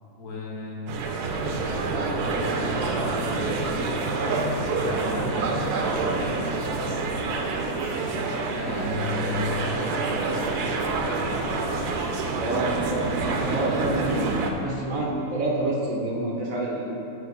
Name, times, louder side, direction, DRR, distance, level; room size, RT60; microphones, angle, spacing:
voice 1, 0.1-1.5 2.1-3.8 4.7-6.9 8.6-11.8, left 2 dB, 75° left, -2 dB, 1.5 m, -35 dB
sound 1, 0.9-14.5, right 3 dB, 85° right, 1.2 m, -27 dB
voice 2, 12.3-13.1 13.4-16.9, right 2 dB, 60° right, -3 dB, 1.4 m, -28 dB
7.8 x 5.2 x 4.1 m, 2.8 s
omnidirectional pair, 1.7 m